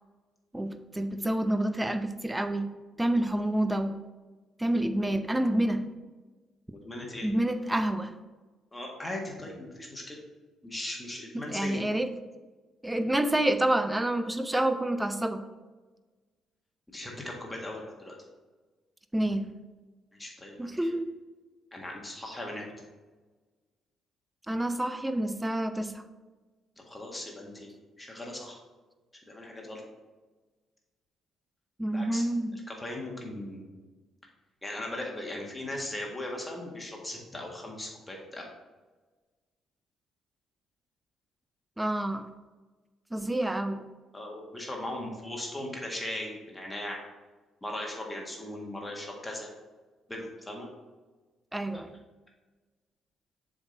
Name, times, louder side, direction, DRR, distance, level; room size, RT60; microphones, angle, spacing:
voice 1, 0.5-2.7 3.0-4.0 4.6-5.8 7.2-8.1 11.5-12.1 12.8-15.4 19.1-19.5 20.6-21.1 24.5-26.0 31.8-32.6 41.8-42.3 43.1-43.8 51.5-51.9, right 1 dB, 10° right, 9 dB, 0.6 m, -28 dB
voice 2, 6.8-7.3 8.7-10.2 10.6-11.9 16.9-18.2 20.2-20.9 21.7-22.7 26.8-27.7 28.0-28.6 29.3-29.8 31.9-32.2 32.7-33.6 34.6-38.4 44.1-47.1 47.6-49.5 50.1-50.7, left 1 dB, 15° left, -1 dB, 1.7 m, -38 dB
7.0 x 3.8 x 4.0 m, 1.3 s
figure-of-eight pair, 45°, 0 cm